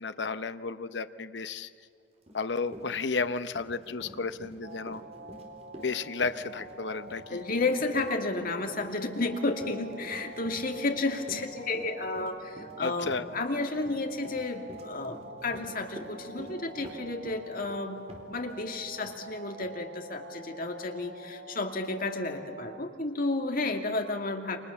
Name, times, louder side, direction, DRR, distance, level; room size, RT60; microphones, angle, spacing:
voice 1, 0.0-1.7 2.3-5.0 5.8-7.4 12.8-13.2, left 4 dB, 65° left, 11 dB, 0.9 m, -33 dB
Run, 2.3-2.4 2.7-18.6 19.0-19.2 19.6-19.7, equal, 35° right, 4.2 m, -47 dB
sound 1, 4.6-22.8, right 3 dB, 85° right, 1.6 m, -47 dB
voice 2, 7.3-24.6, left 3 dB, 50° left, 4 dB, 2.5 m, -32 dB
29.0 x 25.0 x 7.2 m, 2.3 s
head